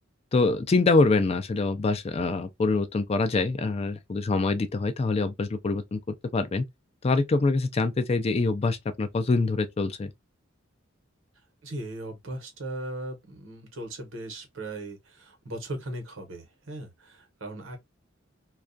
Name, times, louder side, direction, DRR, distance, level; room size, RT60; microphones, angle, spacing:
voice 1, 0.3-6.0 6.3-6.7 7.0-10.1, left 3 dB, 30° left, 0.4 m, -25 dB
voice 2, 11.6-17.8, right 1 dB, 85° right, 1.0 m, -38 dB
2.3 x 2.2 x 2.4 m
head